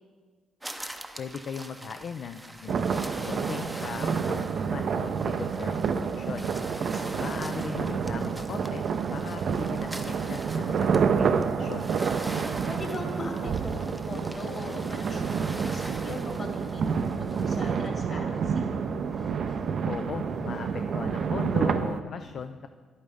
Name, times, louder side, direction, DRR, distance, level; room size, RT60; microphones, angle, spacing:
sound 1, 0.6-17.9, right 1 dB, 10° right, 0.6 m, -43 dB
voice 1, 1.2-6.5 7.2-8.8 9.1-11.9 19.8-22.7, left 6 dB, 60° left, 8 dB, 0.4 m, -38 dB
sound 2, 2.7-22.0, right 6 dB, 60° right, 0.5 m, -29 dB
sound 3, 5.5-21.7, left 1 dB, 15° left, 1.2 m, -49 dB
voice 2, 6.9-7.4 12.6-18.7, left 2 dB, 40° left, 1 dB, 2.1 m, -40 dB
10.5 x 8.7 x 3.5 m, 1.5 s
cardioid pair, 90°, 0 cm